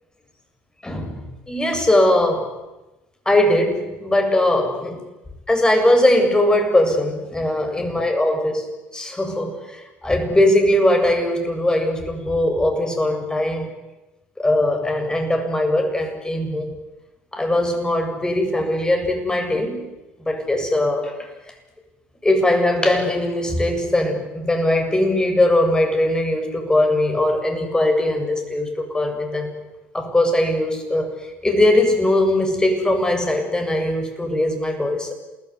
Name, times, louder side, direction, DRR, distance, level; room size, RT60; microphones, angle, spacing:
voice 1, 0.8-2.5 3.3-5.0 5.5-8.7 8.9-13.7 14.4-16.7 17.3-19.9 20.3-21.5 22.2-29.5 29.9-31.1 31.4-35.1, left 1 dB, 15° left, 4 dB, 7.5 m, -20 dB
28.5 x 20.0 x 9.8 m, 1.1 s
figure-of-eight pair, 55°, 6 cm